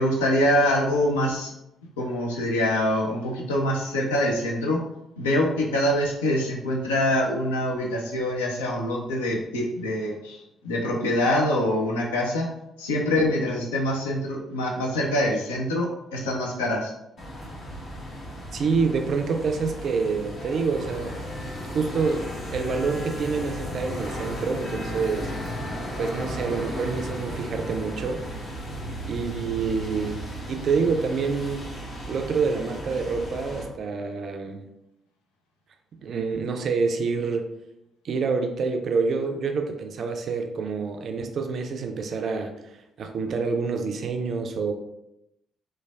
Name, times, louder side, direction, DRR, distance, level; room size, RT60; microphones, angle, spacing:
voice 1, 0.0-1.5 2.0-4.8 5.2-12.5 12.8-16.9, left 1 dB, 75° left, -1 dB, 0.4 m, -25 dB
sound 1, 17.2-33.6, equal, 50° left, 0.8 m, -35 dB
voice 2, 18.5-21.1 21.7-25.3 26.0-28.2 29.1-30.2 30.5-31.7 32.1-34.6 36.0-37.5 38.0-42.5 43.0-44.7, right 4 dB, 50° right, 5 dB, 0.3 m, -27 dB
3.1 x 2.2 x 2.3 m, 0.85 s
figure-of-eight pair, 40°, 0 cm